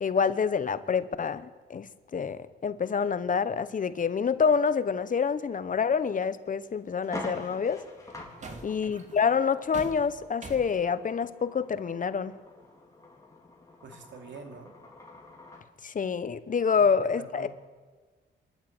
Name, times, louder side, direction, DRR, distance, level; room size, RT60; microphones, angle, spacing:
voice 1, 0.0-7.8 8.6-12.3 15.8-17.5, left 6 dB, 45° left, 13 dB, 1.1 m, -27 dB
sound 1, 5.8-5.9 7.4-7.6 8.1-10.8, right 3 dB, 40° right, 2.9 m, -45 dB
sound 2, 6.1-6.2 6.6-6.7 7.0-15.7, left 2 dB, 15° left, 3.9 m, -45 dB
voice 2, 8.2-8.7 13.8-14.7 16.8-16.9 17.2-17.5, right 4 dB, 75° right, 5 dB, 2.9 m, -45 dB
27.0 x 12.5 x 8.9 m, 1.4 s
cardioid pair, 100°, 19 cm